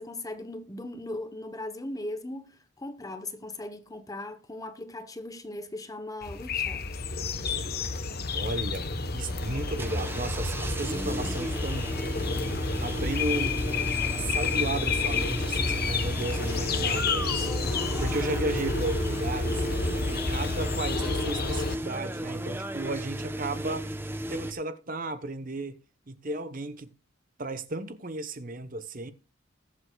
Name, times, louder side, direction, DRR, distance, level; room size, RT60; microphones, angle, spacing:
voice 1, 0.0-6.9, left 2 dB, 15° left, 1.0 m, -38 dB
sound 1, 6.2-21.8, left 4 dB, 50° left, 1.0 m, -30 dB
voice 2, 8.3-12.3 12.8-13.6 14.0-17.5 18.0-19.7 20.1-24.0 24.3-25.8 26.1-26.9 27.4-29.1, right 2 dB, 40° right, 0.9 m, -34 dB
sound 2, 9.3-24.5, right 1 dB, 10° right, 0.8 m, -35 dB
21.0 x 8.0 x 2.3 m
head